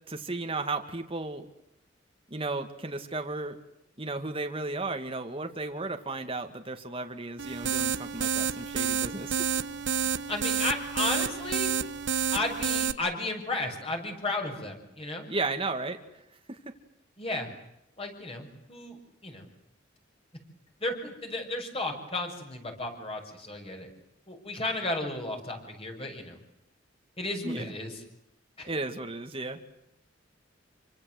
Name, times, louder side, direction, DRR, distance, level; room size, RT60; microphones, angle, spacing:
voice 1, 0.1-1.4 2.3-3.6 4.0-9.4 15.3-16.0 16.5-16.6 27.4-27.7 28.7-29.6, right 3 dB, 30° right, 5 dB, 2.3 m, -34 dB
sound 1, 7.4-12.9, right 7 dB, 65° right, 1.1 m, -29 dB
voice 2, 10.3-11.7 12.3-15.3 17.2-17.5 18.0-19.0 19.2-19.5 20.8-23.9 24.3-26.4 27.2-27.9 28.6-28.7, left 2 dB, 30° left, 3 dB, 6.9 m, -33 dB
28.0 x 25.0 x 8.1 m, 0.83 s
head